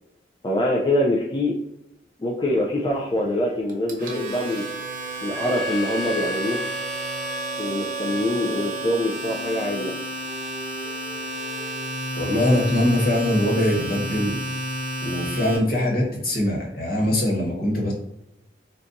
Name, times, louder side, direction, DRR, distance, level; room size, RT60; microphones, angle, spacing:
voice 1, 0.4-1.6 2.2-4.7 5.2-6.6 7.6-9.9, left 1 dB, 25° left, -3 dB, 0.3 m, -24 dB
sound 1, 2.7-7.5 9.5-14.5, right 3 dB, 75° left, 1.2 m, -42 dB
Domestic sounds home sounds, 3.7-15.6, right 1 dB, 45° right, 0.8 m, -31 dB
Wind instrument woodwind instrument, 5.3-9.1, right 1 dB, 5° right, 0.8 m, -32 dB
voice 2, 12.1-14.4 15.0-17.9, left 1 dB, 55° left, -2 dB, 1.1 m, -22 dB
3.9 x 2.3 x 2.5 m, 0.85 s
head